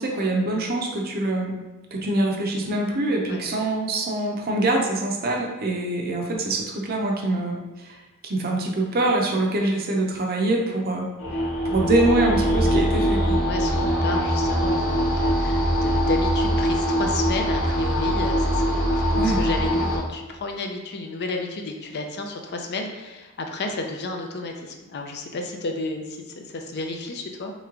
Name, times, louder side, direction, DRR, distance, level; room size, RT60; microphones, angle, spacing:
voice 1, 0.0-1.5 1.9-8.0 8.2-11.1 11.6-13.4 19.1-19.4, right 2 dB, 45° right, 0 dB, 0.6 m, -24 dB
sound 1, 11.2-20.0, equal, 90° left, 1.2 m, -22 dB
voice 2, 13.4-27.5, left 2 dB, 50° left, 3 dB, 0.5 m, -32 dB
3.3 x 3.0 x 3.7 m, 1.1 s
head